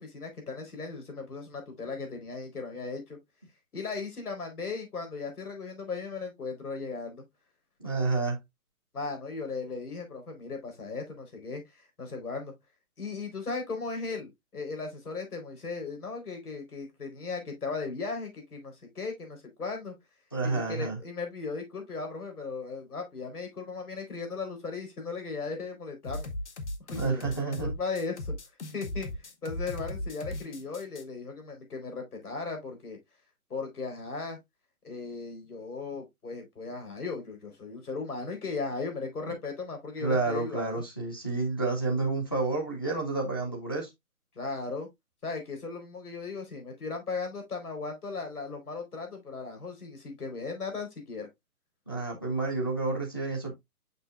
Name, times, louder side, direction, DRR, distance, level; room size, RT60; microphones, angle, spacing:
voice 1, 0.0-3.2 3.7-7.2 8.9-12.5 13.0-19.9 20.4-26.3 26.9-28.3 28.7-29.1 29.4-33.0 33.5-34.4 34.8-40.7 44.4-44.9 45.2-51.3, left 4 dB, 85° left, 4.3 m, -37 dB
voice 2, 7.8-8.4 20.3-21.0 26.9-27.7 40.0-43.9 51.9-53.5, right 3 dB, 15° left, 0.7 m, -29 dB
sound 1, 26.0-31.0, left 1 dB, 50° left, 1.1 m, -37 dB
6.5 x 5.9 x 2.4 m
hypercardioid pair, 180°, 44 cm